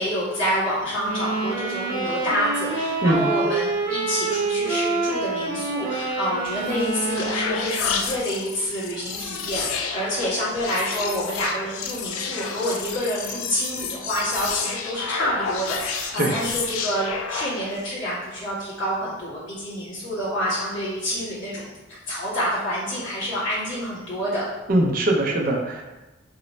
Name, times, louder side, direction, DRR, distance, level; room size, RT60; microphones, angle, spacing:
voice 1, 0.0-24.4, equal, 65° left, -9 dB, 1.4 m, -28 dB
sound 1, 1.0-7.8, right 3 dB, 85° right, 0.7 m, -27 dB
sound 2, 6.4-17.9, left 5 dB, 85° left, 0.4 m, -31 dB
voice 2, 16.2-16.5 24.7-25.8, right 1 dB, 45° right, 0 dB, 0.5 m, -21 dB
3.1 x 2.0 x 4.0 m, 1.1 s
head